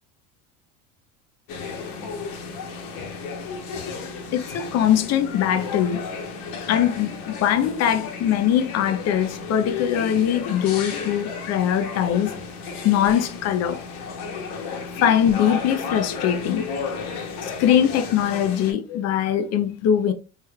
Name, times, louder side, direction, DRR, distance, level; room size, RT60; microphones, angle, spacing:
sound 1, 1.5-18.7, left 5 dB, 65° left, 1.0 m, -33 dB
voice 1, 4.3-6.1 6.7-12.3 12.8-13.8 15.0-16.7 17.4-20.1, left 9 dB, 45° left, 0.5 m, -22 dB
3.2 x 3.1 x 2.3 m
supercardioid pair, 105°, 38 cm